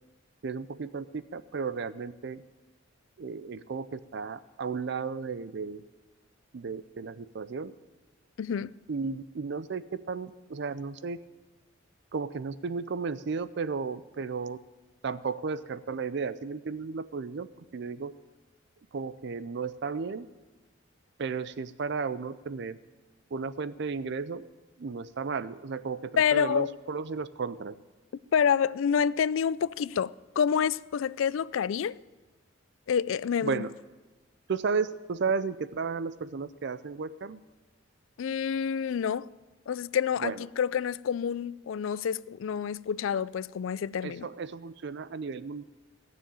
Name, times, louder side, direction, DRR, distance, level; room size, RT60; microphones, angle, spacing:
voice 1, 0.4-2.4 3.2-5.8 6.5-7.7 8.9-11.2 12.1-14.6 15.0-17.5 17.7-18.1 18.9-20.3 21.2-22.8 23.3-24.5 24.8-27.8 33.4-33.7 34.5-37.4 40.2-40.5 44.0-45.6, right 5 dB, 60° right, 0.5 m, -34 dB
voice 2, 8.4-8.7 26.2-26.7 28.3-32.0 32.9-33.6 38.2-39.3 39.7-44.3, left 7 dB, 75° left, 0.4 m, -28 dB
16.5 x 6.9 x 8.9 m
head